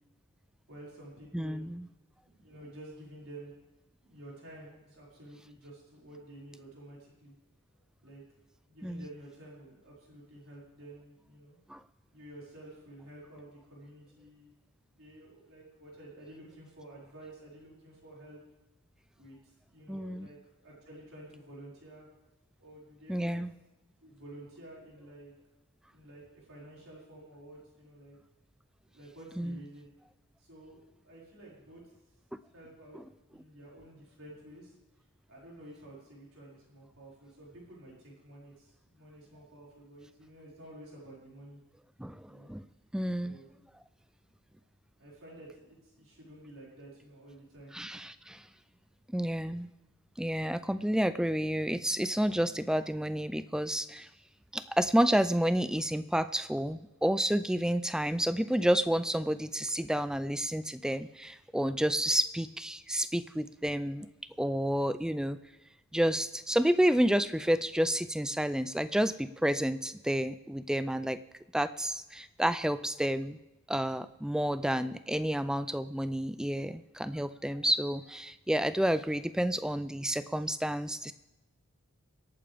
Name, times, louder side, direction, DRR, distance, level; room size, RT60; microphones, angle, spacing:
voice 1, 0.7-1.7 2.2-3.5 4.0-7.3 8.0-8.2 8.7-11.6 12.1-14.5 14.9-18.4 19.2-20.4 20.6-22.0 22.6-23.4 24.0-25.3 25.9-28.2 28.9-29.9 30.4-31.8 32.5-33.0 33.3-34.8 35.3-41.6 42.3-42.5 43.2-43.5 45.0-47.7 48.0-48.1, right 1 dB, 70° right, -5 dB, 5.3 m, -51 dB
voice 2, 1.3-1.9 8.8-9.1 11.7-11.8 19.9-20.3 23.1-23.5 29.4-29.6 42.0-42.6 42.9-43.4 47.7-48.4 49.1-49.7 50.2-54.1 54.5-64.1 64.4-65.4 65.9-71.2 71.5-73.4 73.7-81.1, equal, 5° right, 13 dB, 0.3 m, -30 dB
25.0 x 8.8 x 3.5 m, 1.1 s
head